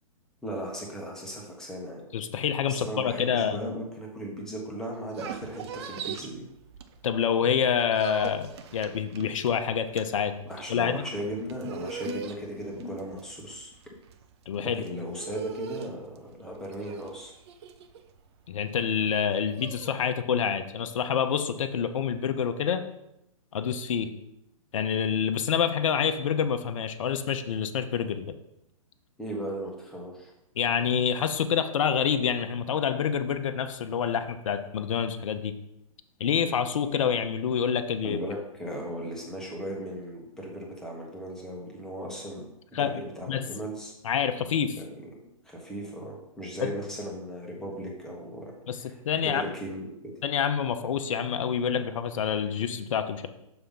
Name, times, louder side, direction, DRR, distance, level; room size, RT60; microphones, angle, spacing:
voice 1, 0.4-2.1 2.7-6.4 10.4-13.7 14.6-17.3 29.2-30.3 38.0-43.9 44.8-45.1 45.4-50.2, equal, 5° left, -2 dB, 1.3 m, -37 dB
voice 2, 2.1-3.6 7.0-10.3 10.7-11.1 14.5-14.8 18.5-22.8 23.5-24.1 24.7-28.3 30.6-35.5 36.2-38.2 42.7-43.0 43.3-43.4 44.0-44.8 46.6-46.7 48.7-48.8 49.0-49.4 50.2-53.3, left 7 dB, 60° left, 9 dB, 0.7 m, -27 dB
sound 1, 4.9-7.3 7.6-19.9, right 7 dB, 45° right, 0.6 m, -41 dB
6.8 x 3.4 x 5.6 m, 0.84 s
hypercardioid pair, 130°, 18 cm